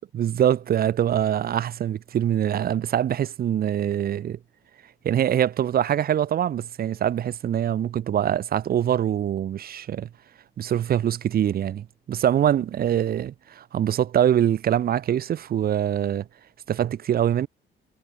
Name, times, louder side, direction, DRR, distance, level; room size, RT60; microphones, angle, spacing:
voice 1, 0.1-4.4 5.0-10.1 10.6-16.3 16.7-17.5, right 10 dB, 50° right, 0.5 m, -24 dB
cardioid pair, 90°, 20 cm